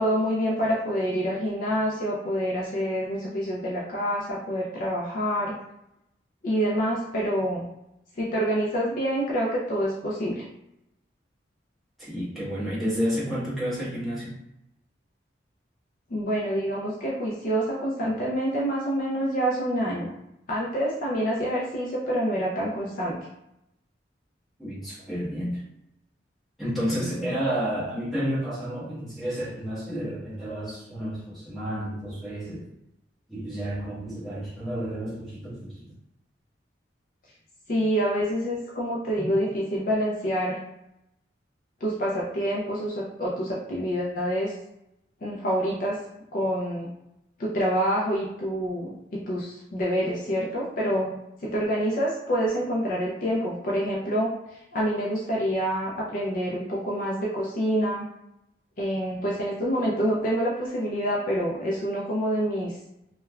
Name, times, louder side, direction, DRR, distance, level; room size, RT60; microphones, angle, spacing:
voice 1, 0.0-5.6 6.4-7.7 8.2-10.5 16.1-20.1 20.5-23.3 37.7-40.6 41.8-44.6 45.2-46.0 46.3-46.9 47.4-58.1 58.8-62.8, equal, 45° left, -5 dB, 0.4 m, -27 dB
voice 2, 12.0-14.4 24.6-25.6 26.6-32.7 33.3-36.0 39.2-39.3, equal, ahead, -11 dB, 1.1 m, -31 dB
3.2 x 2.2 x 2.2 m, 0.85 s
head